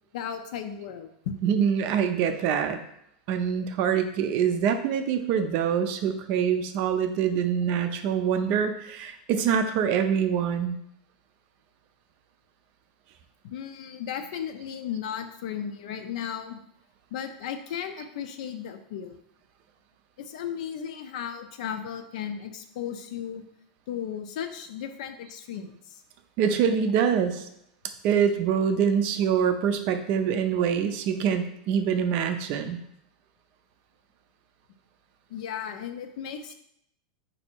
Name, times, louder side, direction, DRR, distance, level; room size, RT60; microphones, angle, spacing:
voice 1, 0.1-1.3 5.4-5.5 13.4-16.6 17.1-19.2 20.2-23.4 23.9-26.0 35.3-36.5, left 8 dB, 65° left, 7 dB, 0.5 m, -35 dB
voice 2, 1.4-2.8 3.3-10.8 26.4-27.5 28.0-32.8, right 7 dB, 40° right, 8 dB, 0.4 m, -25 dB
4.0 x 2.7 x 4.4 m, 0.74 s
supercardioid pair, 160°, 4 cm